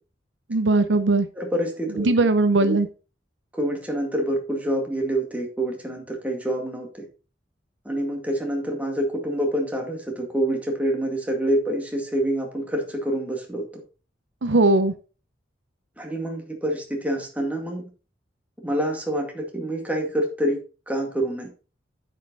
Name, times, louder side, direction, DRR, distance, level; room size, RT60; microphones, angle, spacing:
voice 1, 0.5-1.3 2.0-2.9 14.4-14.9, right 2 dB, 75° right, 11 dB, 0.7 m, -19 dB
voice 2, 1.4-2.1 2.6-2.8 3.5-7.0 7.8-13.6 16.0-17.8 18.6-21.5, right 1 dB, 10° right, 1 dB, 2.1 m, -27 dB
9.4 x 5.4 x 4.0 m, 0.34 s
head